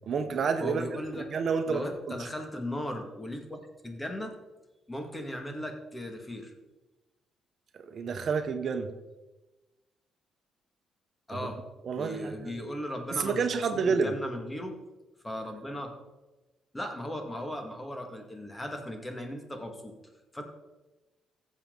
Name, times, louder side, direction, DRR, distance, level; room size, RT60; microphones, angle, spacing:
voice 1, 0.1-1.8 2.1-2.2 7.8-8.9 11.9-12.5 13.1-14.1, right 5 dB, 55° right, 7 dB, 1.0 m, -29 dB
voice 2, 0.6-1.3 1.7-4.4 4.9-6.5 11.3-11.6 12.0-13.5 13.7-14.8 15.2-16.0 16.7-20.0 20.3-20.4, left 1 dB, 15° left, 4 dB, 1.9 m, -37 dB
14.5 x 7.5 x 3.9 m, 1.1 s
cardioid pair, 90°, 0 cm